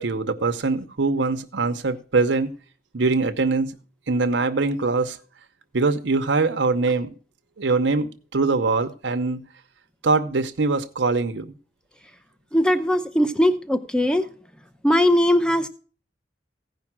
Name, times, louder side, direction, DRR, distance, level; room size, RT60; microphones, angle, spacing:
voice 1, 0.0-2.5 2.9-3.7 4.1-5.2 5.7-7.1 7.6-9.4 10.0-11.5, right 3 dB, 85° right, 0.8 m, -22 dB
voice 2, 12.5-14.2 14.8-15.7, left 1 dB, 5° left, 0.7 m, -20 dB
15.5 x 5.2 x 6.0 m
head